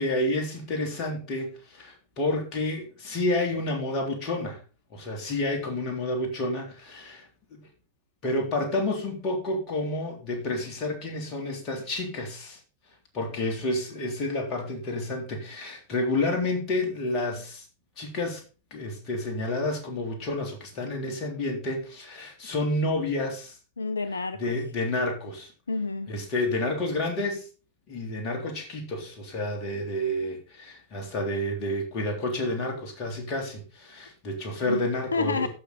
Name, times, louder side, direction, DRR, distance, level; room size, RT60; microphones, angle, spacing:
voice 1, 0.0-4.6 4.9-7.6 8.2-12.6 13.1-17.6 18.0-18.4 18.7-23.6 24.4-25.5 26.1-27.5 27.9-35.5, left 1 dB, 35° left, 3.5 m, -30 dB
voice 2, 23.8-24.5 25.7-26.1 34.6-35.5, left 4 dB, 75° left, 0.4 m, -29 dB
14.0 x 6.2 x 4.2 m
figure-of-eight pair, 90°, 0 cm